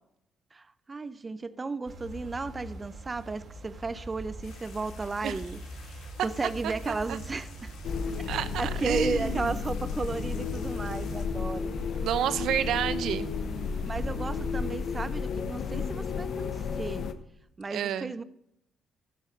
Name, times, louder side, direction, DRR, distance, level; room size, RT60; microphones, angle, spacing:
voice 1, 0.5-7.7 8.6-11.7 13.9-17.1 17.6-18.2, right 3 dB, 25° right, 0.6 m, -34 dB
sound 1, 1.9-14.7, right 2 dB, 60° right, 3.9 m, -43 dB
sound 2, 4.4-11.3, left 7 dB, 80° left, 2.3 m, -53 dB
voice 2, 6.6-7.2 8.2-9.5 12.0-13.3 17.7-18.1, right 9 dB, 80° right, 0.8 m, -30 dB
sound 3, 7.8-17.1, left 5 dB, 65° left, 1.1 m, -33 dB
12.0 x 11.0 x 5.2 m
cardioid pair, 90°, 0 cm